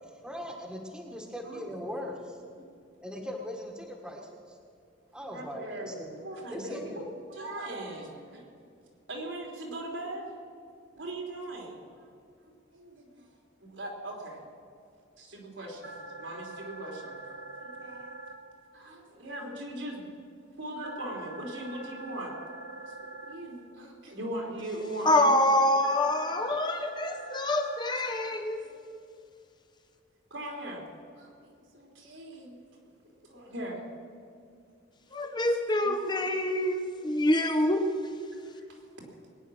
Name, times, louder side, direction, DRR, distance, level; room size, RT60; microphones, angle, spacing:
voice 1, 0.2-2.4 3.0-4.5 5.1-6.2 6.5-7.1, equal, 5° right, 1 dB, 1.5 m, -40 dB
voice 2, 5.3-8.4 9.1-10.3 11.0-11.9 12.4-13.2 13.6-14.4 15.2-18.1 18.7-20.1 20.6-22.4 22.8-25.3 30.3-30.8 31.1-32.6 33.2-33.8 35.4-35.5 35.8-36.1 38.5-38.8, right 1 dB, 80° right, 0 dB, 3.6 m, -40 dB
sound 1, 15.8-18.3 20.8-23.3 25.8-28.3, right 2 dB, 60° right, 1.5 m, -44 dB
voice 3, 25.0-28.6 35.1-38.0, left 1 dB, 20° left, 6 dB, 0.9 m, -26 dB
21.0 x 10.0 x 6.4 m, 2.4 s
head